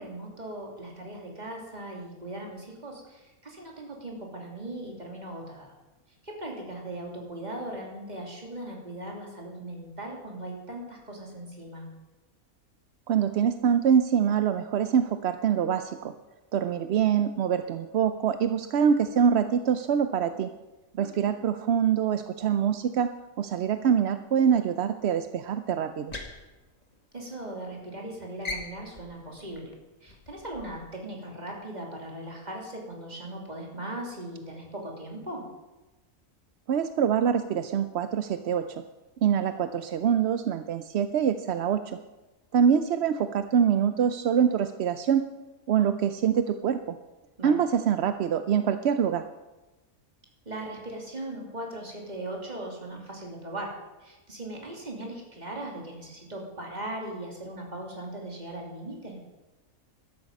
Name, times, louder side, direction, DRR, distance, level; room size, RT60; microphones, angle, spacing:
voice 1, 0.0-5.7 6.2-11.9 21.0-21.3 27.1-29.7 30.0-35.4 47.4-47.5 50.5-53.7 54.0-59.2, right 1 dB, 30° right, -1 dB, 2.9 m, -39 dB
voice 2, 13.1-16.1 16.5-20.5 20.9-23.1 23.4-26.1 36.7-38.8 39.2-42.0 42.5-45.2 45.7-46.8 47.4-49.2, right 8 dB, 60° right, 9 dB, 0.7 m, -25 dB
sound 1, 25.9-27.5 27.8-28.1 28.4-31.0, left 2 dB, 25° left, 1.6 m, -41 dB
13.0 x 12.5 x 5.3 m, 1.1 s
omnidirectional pair, 1.6 m